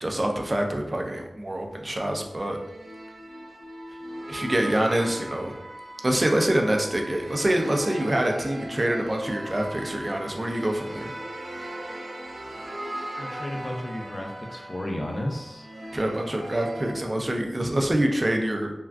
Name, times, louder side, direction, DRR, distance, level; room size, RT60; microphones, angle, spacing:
voice 1, 0.0-2.6 4.3-5.5 6.0-11.1 15.9-18.7, right 1 dB, 40° right, 2 dB, 0.5 m, -25 dB
sound 1, 2.3-16.9, right 1 dB, 90° right, 0.5 m, -38 dB
voice 2, 13.2-15.7, left 1 dB, 40° left, 1 dB, 0.5 m, -33 dB
3.5 x 2.3 x 2.3 m, 0.89 s
wide cardioid pair, 45°, 0 cm